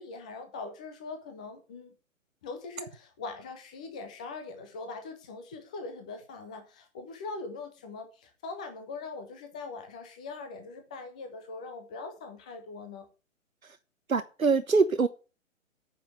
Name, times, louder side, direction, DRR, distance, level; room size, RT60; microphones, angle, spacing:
voice 1, 0.0-1.9 2.4-13.1, left 3 dB, 5° left, 0.4 m, -41 dB
voice 2, 14.1-15.1, right 4 dB, 85° right, 1.0 m, -24 dB
9.2 x 5.7 x 8.0 m
figure-of-eight pair, 130°, 40 cm